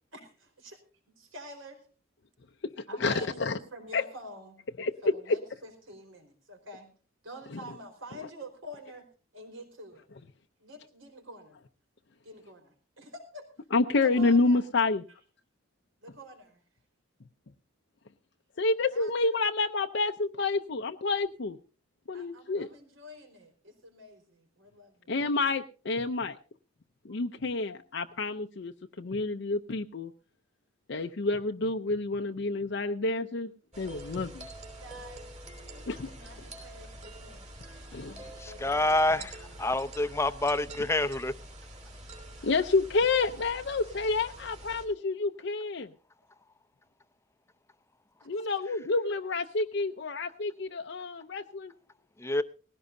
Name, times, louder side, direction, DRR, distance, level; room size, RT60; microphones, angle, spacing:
voice 1, 0.1-0.8 1.1-1.8 2.9-4.6 5.0-6.9 7.2-9.1 9.3-10.0 10.6-11.6 12.2-13.5 14.0-14.6 16.0-16.6 18.9-19.1 22.1-25.1 27.1-27.2 34.8-35.3 35.7-37.6 38.0-39.3 48.2-48.4, equal, 75° right, 5 dB, 4.4 m, -47 dB
voice 2, 2.6-3.6 3.9-4.0 4.8-5.4 7.5-7.6 13.7-15.0 18.6-21.6 22.1-22.7 25.1-26.4 27.0-30.1 30.9-33.5 33.8-34.5 35.9-36.1 37.9-38.2 42.4-45.9 48.3-51.7, left 3 dB, 60° left, 5 dB, 0.6 m, -29 dB
sound 1, 33.7-44.9, right 1 dB, 35° right, 3.3 m, -46 dB
voice 3, 38.4-41.3 52.2-52.4, left 2 dB, 15° left, 12 dB, 0.6 m, -27 dB
19.0 x 16.5 x 2.7 m, 0.37 s
head